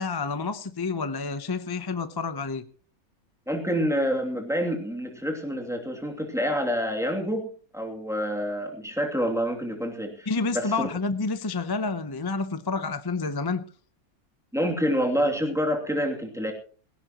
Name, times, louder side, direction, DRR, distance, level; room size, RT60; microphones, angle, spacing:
voice 1, 0.0-2.6 10.3-13.6, left 4 dB, 25° left, 0.5 m, -29 dB
voice 2, 3.5-7.5 7.7-10.3 10.5-10.9 14.5-16.5, equal, ahead, 2.6 m, -27 dB
18.0 x 16.5 x 3.0 m
omnidirectional pair, 1.5 m